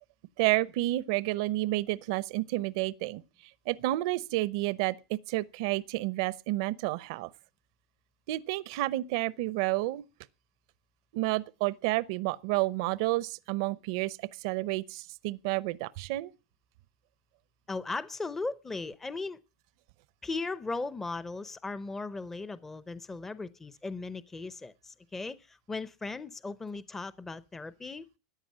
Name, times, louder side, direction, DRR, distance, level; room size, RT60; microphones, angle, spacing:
voice 1, 0.4-3.2 3.7-7.3 8.3-10.0 11.1-16.3, right 18 dB, 60° right, 0.7 m, -30 dB
voice 2, 17.7-19.4 20.2-28.0, left 3 dB, 10° left, 0.7 m, -37 dB
14.0 x 9.9 x 7.4 m
supercardioid pair, 135°, 3 cm